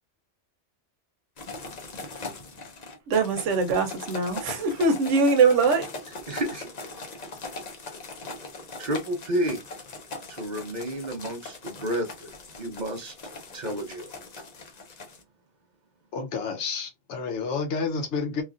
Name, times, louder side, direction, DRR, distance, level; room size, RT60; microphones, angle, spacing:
sound 1, 1.4-15.2, left 3 dB, 45° left, 0.6 m, -40 dB
voice 1, 3.1-5.9, right 4 dB, 85° right, 1.0 m, -22 dB
voice 2, 6.3-6.7 8.8-9.6 10.3-13.1 13.5-14.1, equal, 45° right, 0.7 m, -31 dB
voice 3, 16.1-18.4, left 5 dB, 75° left, 1.1 m, -30 dB
3.1 x 2.4 x 2.4 m
omnidirectional pair, 1.2 m